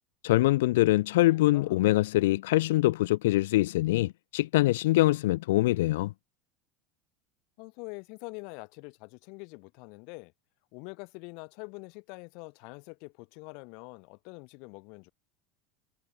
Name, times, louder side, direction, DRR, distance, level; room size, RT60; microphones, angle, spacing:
voice 1, 0.2-6.1, left 17 dB, 85° left, 0.6 m, -24 dB
voice 2, 0.9-1.8 7.6-10.3 10.7-15.1, left 34 dB, 50° left, 3.7 m, -45 dB
supercardioid pair, 170°, 0 cm